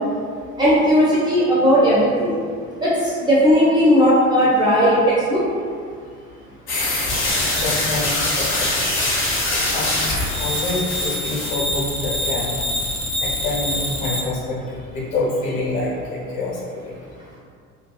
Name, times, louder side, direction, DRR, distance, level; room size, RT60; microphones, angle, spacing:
voice 1, 0.6-2.3 2.8-5.4, equal, 10° right, -8 dB, 0.4 m, -16 dB
sound 1, 6.7-14.2, left 1 dB, 30° left, 0.7 m, -23 dB
voice 2, 7.5-8.7 9.7-9.9 10.4-12.5 13.2-16.9, left 2 dB, 55° left, -5 dB, 0.9 m, -26 dB
2.6 x 2.3 x 2.2 m, 2.2 s
figure-of-eight pair, 55°, 42 cm